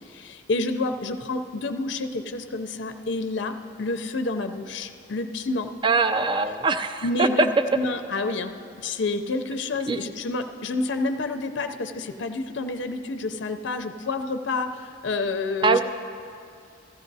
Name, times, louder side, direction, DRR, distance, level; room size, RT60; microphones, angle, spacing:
voice 1, 0.1-5.7 7.0-15.8, left 3 dB, 60° left, 8 dB, 0.5 m, -29 dB
voice 2, 5.8-7.3 9.9-10.0 15.6-15.8, right 4 dB, 25° right, 9 dB, 0.4 m, -22 dB
16.5 x 14.5 x 2.7 m, 2.4 s
head